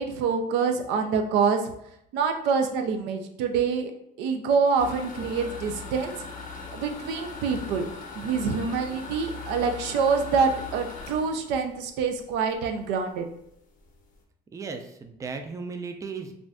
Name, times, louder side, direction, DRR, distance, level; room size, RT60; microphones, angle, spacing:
voice 1, 0.0-1.7 2.1-3.9 4.2-6.2 6.7-7.9 8.1-13.2, right 5 dB, 90° right, 5 dB, 0.4 m, -26 dB
sound 1, 4.8-12.5 13.0-13.1 13.5-13.6 13.8-14.1, left 4 dB, 50° left, 0.6 m, -40 dB
voice 2, 14.5-16.3, right 4 dB, 20° right, 5 dB, 0.3 m, -36 dB
2.5 x 2.3 x 3.3 m, 0.75 s
cardioid pair, 110°, 17 cm